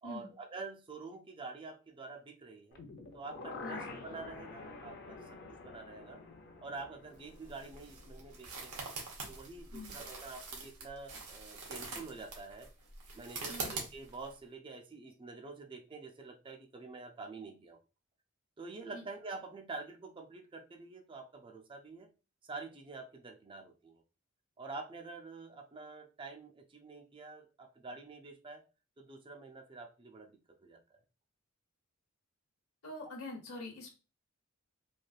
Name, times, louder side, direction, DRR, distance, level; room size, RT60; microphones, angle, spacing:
voice 1, 0.0-2.8 3.1-6.2 6.6-8.9 9.3-12.7 13.1-17.8 18.6-22.1 22.4-24.0 24.6-28.6 29.0-30.3 30.6-30.8, right 3 dB, 25° right, 5 dB, 0.4 m, -47 dB
sound 1, 2.7-8.7 9.1-9.2, left 3 dB, 50° left, 0.5 m, -48 dB
sound 2, 7.1-14.3, right 4 dB, 85° right, 0.9 m, -44 dB
voice 2, 13.5-13.8 18.9-19.0 32.8-33.9, left 2 dB, 70° left, 0 dB, 0.9 m, -44 dB
3.2 x 2.5 x 2.3 m, 0.31 s
head